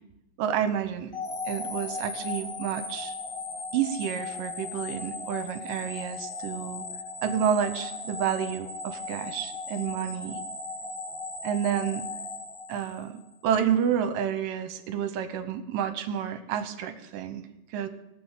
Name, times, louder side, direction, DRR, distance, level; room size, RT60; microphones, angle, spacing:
voice 1, 0.4-1.1 1.5-3.1 3.7-6.8 7.2-10.4 11.4-12.1 12.7-17.9, right 8 dB, 70° right, 10 dB, 2.4 m, -29 dB
sound 1, 1.1-13.3, left 3 dB, 35° left, 2.0 m, -37 dB
19.5 x 7.1 x 7.4 m, 0.90 s
omnidirectional pair, 4.4 m